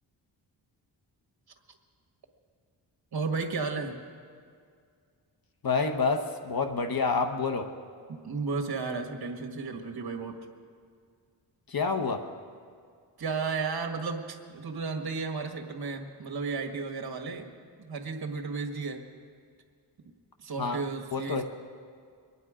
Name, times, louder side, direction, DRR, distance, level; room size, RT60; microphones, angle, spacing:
voice 1, 3.1-4.0 8.1-10.4 13.2-17.5 17.8-19.0 20.4-21.4, right 4 dB, 55° right, 4 dB, 1.6 m, -33 dB
voice 2, 5.6-7.7 11.7-12.2 20.6-20.8 21.1-21.4, left 4 dB, 50° left, 6 dB, 1.0 m, -28 dB
23.0 x 9.6 x 5.0 m, 2.2 s
cardioid pair, 80°, 44 cm